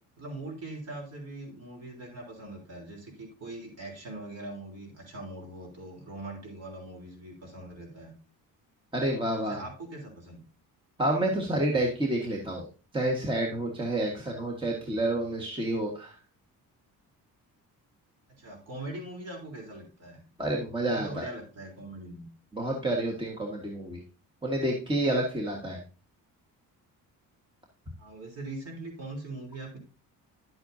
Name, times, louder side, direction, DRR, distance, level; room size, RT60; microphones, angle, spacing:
voice 1, 0.2-8.1 9.4-10.4 18.3-20.2 20.8-22.3 28.0-29.8, right 2 dB, 45° right, 1 dB, 3.6 m, -41 dB
voice 2, 8.9-9.6 11.0-12.6 12.9-16.2 20.4-21.2 22.5-24.0 24.4-25.8, right 1 dB, 15° right, -1 dB, 1.5 m, -29 dB
10.5 x 7.9 x 2.7 m, 0.35 s
cardioid pair, 120°, 34 cm